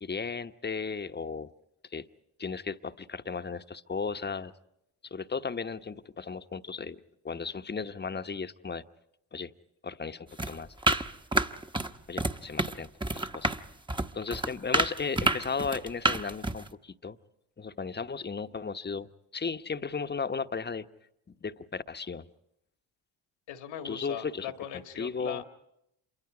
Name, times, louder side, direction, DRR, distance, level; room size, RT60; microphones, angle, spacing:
voice 1, 0.0-1.5 1.9-2.1 2.4-4.5 5.1-7.0 7.2-8.8 9.3-9.5 9.8-10.7 12.1-13.5 14.1-17.2 17.6-19.1 19.3-20.9 21.4-22.3 23.8-24.5 25.0-25.4, left 5 dB, 20° left, 10 dB, 1.0 m, -35 dB
sound 1, 10.4-11.9 12.2-12.8 13.0-16.7, right 2 dB, 10° right, 1.0 m, -28 dB
voice 2, 23.5-25.4, left 10 dB, 75° left, 7 dB, 1.8 m, -39 dB
27.0 x 23.5 x 4.9 m, 0.81 s
hypercardioid pair, 50°, 47 cm